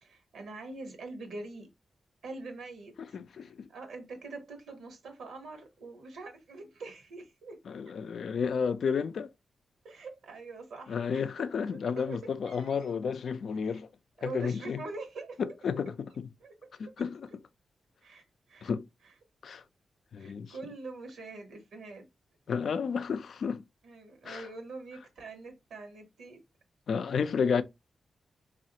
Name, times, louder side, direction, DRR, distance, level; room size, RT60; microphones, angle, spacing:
voice 1, 0.0-1.7 2.2-7.6 9.8-11.0 12.0-12.2 12.5-12.9 13.6-13.8 14.2-15.4 16.4-16.7 18.0-18.7 20.2-22.1 23.8-26.4 27.3-27.6, right 3 dB, 90° right, 1.0 m, -44 dB
voice 2, 3.0-3.7 7.7-9.3 10.9-13.9 14.2-14.8 15.4-16.3 16.8-17.3 18.6-18.8 19.4-19.6 20.1-20.5 22.5-23.6 24.2-24.5 26.9-27.6, left 6 dB, 75° left, 0.3 m, -32 dB
3.1 x 2.4 x 2.7 m
cardioid pair, 75°, 0 cm